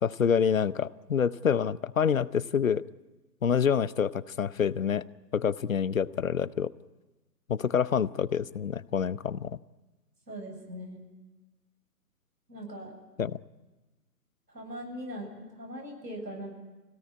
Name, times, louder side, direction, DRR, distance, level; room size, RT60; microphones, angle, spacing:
voice 1, 0.0-2.9 3.4-5.0 5.3-6.7 7.5-9.6 13.2-13.4, left 7 dB, 55° left, 19 dB, 0.8 m, -27 dB
voice 2, 10.3-11.0 12.5-13.0 14.5-16.5, equal, 80° right, 1 dB, 7.9 m, -40 dB
25.5 x 17.5 x 9.8 m, 1.2 s
figure-of-eight pair, 140°, 49 cm